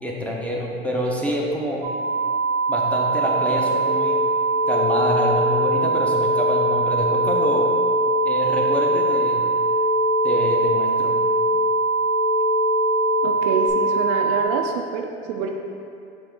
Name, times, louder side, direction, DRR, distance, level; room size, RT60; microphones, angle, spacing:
voice 1, 0.0-1.9 2.7-4.2 4.7-7.7 8.2-9.4 10.2-11.2, equal, 5° left, -3 dB, 0.7 m, -26 dB
sound 1, 1.8-14.5, right 4 dB, 80° right, 0.8 m, -22 dB
sound 2, 3.7-13.7, left 4 dB, 60° left, 0.7 m, -25 dB
voice 2, 13.2-15.5, right 5 dB, 60° right, 3 dB, 0.5 m, -26 dB
6.0 x 2.1 x 3.7 m, 2.5 s
hypercardioid pair, 75°, 30 cm